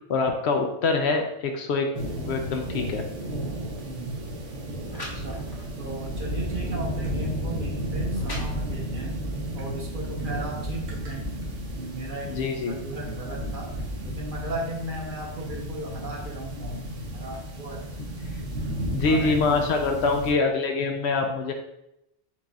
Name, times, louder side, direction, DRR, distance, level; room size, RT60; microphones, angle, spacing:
voice 1, 0.1-1.9 2.2-3.0 12.2-12.8 18.9-21.5, left 4 dB, 70° left, 4 dB, 0.8 m, -25 dB
sound 1, 1.9-20.3, right 1 dB, 85° right, 1.2 m, -33 dB
sound 2, 3.8-3.9 4.6-4.7 4.9-5.8 6.4-6.5 7.3-7.4 7.9-9.1, equal, 25° left, 0.7 m, -39 dB
voice 2, 3.8-4.5 5.1-9.2 9.5-11.4 11.8-12.3 12.7-13.7 14.0-17.8 19.0-20.3, right 1 dB, 50° right, -1 dB, 0.9 m, -37 dB
4.6 x 2.4 x 3.9 m, 0.84 s
omnidirectional pair, 1.2 m